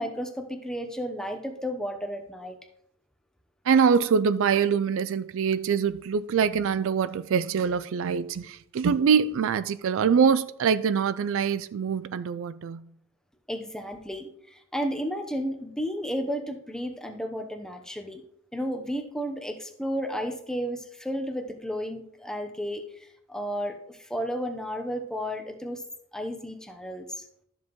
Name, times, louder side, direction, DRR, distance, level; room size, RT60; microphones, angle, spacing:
voice 1, 0.0-2.6 13.5-18.2 18.5-25.8 26.1-27.3, equal, 5° left, 0.9 m, -33 dB
voice 2, 3.7-12.9, right 6 dB, 65° right, 0.4 m, -24 dB
13.0 x 7.3 x 3.1 m
head